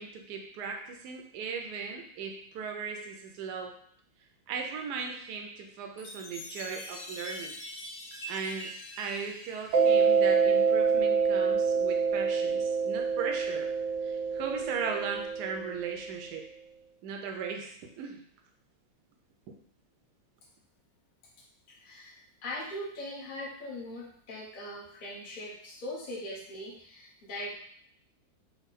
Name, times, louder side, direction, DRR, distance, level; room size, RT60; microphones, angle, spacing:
voice 1, 0.0-3.7 4.5-7.6 8.3-8.7 9.0-13.7 14.0-16.4 17.0-18.2 19.5-19.6, right 5 dB, 70° right, 3 dB, 1.1 m, -37 dB
Chime, 6.0-10.6, left 1 dB, 60° left, 1.2 m, -44 dB
Mallet percussion, 9.7-16.1, right 5 dB, 90° right, 1.3 m, -26 dB
voice 2, 21.7-27.5, left 1 dB, 35° left, -5 dB, 1.0 m, -40 dB
4.5 x 2.2 x 4.1 m, 0.62 s
omnidirectional pair, 1.9 m